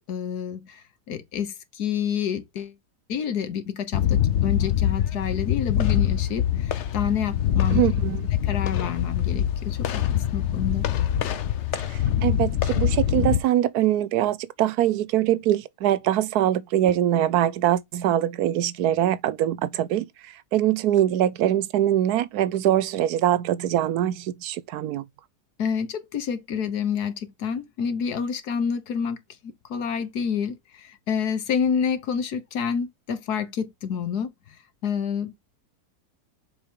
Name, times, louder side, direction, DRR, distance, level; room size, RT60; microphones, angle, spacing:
voice 1, 0.1-2.7 3.1-7.8 8.4-10.9 25.6-29.2 29.7-34.3 34.8-35.4, left 7 dB, 75° left, 1.7 m, -28 dB
sound 1, 3.9-13.4, left 10 dB, 55° left, 0.9 m, -24 dB
voice 2, 7.7-8.2 11.9-20.1 20.5-25.0, right 12 dB, 80° right, 1.1 m, -23 dB
7.0 x 5.0 x 3.6 m
omnidirectional pair, 1.7 m